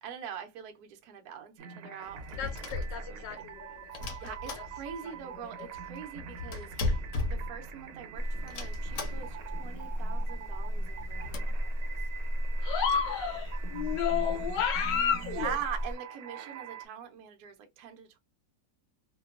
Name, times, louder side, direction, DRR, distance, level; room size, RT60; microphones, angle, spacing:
voice 1, 0.0-3.5 4.2-6.7 7.2-11.5 11.8-12.0 14.9-18.2, right 8 dB, 70° right, 1.0 m, -43 dB
sound 1, 1.6-16.9, right 8 dB, 85° right, 1.3 m, -46 dB
Light wooden door open and close, 2.0-3.4 3.9-5.2 5.5-5.6 5.7-8.0 8.5-9.5 9.9-10.0 10.2-10.3 10.8-11.4, left 2 dB, 65° left, 0.8 m, -36 dB
voice 2, 2.4-4.3 5.0-5.1 5.6-5.7 12.6-15.5, left 8 dB, 90° left, 1.3 m, -32 dB
sound 2, 8.1-16.0, equal, 40° left, 0.5 m, -35 dB
2.9 x 2.2 x 2.3 m
omnidirectional pair, 1.9 m